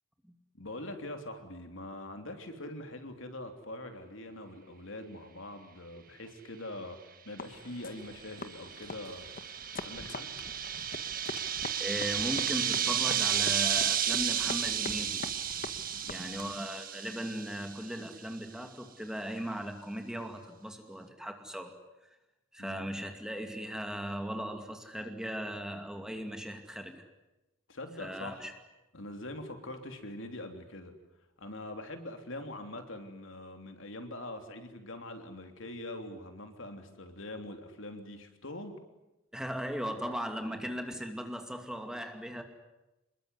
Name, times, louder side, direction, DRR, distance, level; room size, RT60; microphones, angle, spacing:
voice 1, 0.5-9.3 9.8-10.3 15.9-16.5 22.6-22.8 27.7-28.5 28.9-30.9 31.4-38.8, left 1 dB, 65° left, 6 dB, 3.3 m, -43 dB
sound 1, 7.4-16.7, left 3 dB, 40° left, 1.3 m, -45 dB
sound 2, 8.0-17.8, right 9 dB, 40° right, 1.6 m, -32 dB
voice 2, 11.8-15.2 16.1-21.7 22.5-27.0 28.0-28.5 39.3-42.4, equal, 5° right, 5 dB, 2.4 m, -38 dB
26.5 x 22.0 x 9.9 m, 0.97 s
head